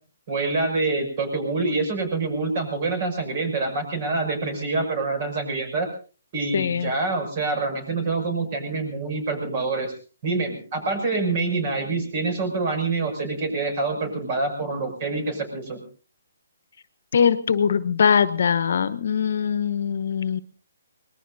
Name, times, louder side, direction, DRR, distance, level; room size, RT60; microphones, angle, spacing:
voice 1, 0.3-5.9 6.3-9.9 10.2-15.8, right 3 dB, 40° right, 6 dB, 6.4 m, -26 dB
voice 2, 6.5-6.9 17.1-20.4, left 7 dB, 65° left, 15 dB, 1.1 m, -21 dB
25.0 x 20.0 x 2.7 m, 0.37 s
hypercardioid pair, 150°, 0 cm